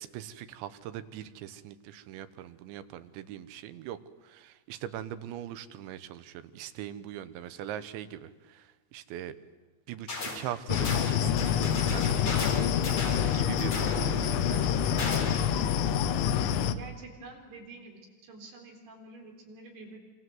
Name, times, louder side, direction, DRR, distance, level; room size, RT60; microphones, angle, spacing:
voice 1, 0.0-4.0 4.2-9.4 9.9-12.7 13.3-15.4, right 11 dB, 80° right, 13 dB, 3.3 m, -41 dB
sound 1, 10.1-10.4 10.7-15.5, left 3 dB, 40° left, 4.9 m, -36 dB
sound 2, 10.7-16.8, left 8 dB, 80° left, 3.4 m, -27 dB
voice 2, 16.7-20.0, right 3 dB, 60° right, 2 dB, 5.9 m, -48 dB
27.0 x 26.0 x 7.8 m, 1.3 s
omnidirectional pair, 5.3 m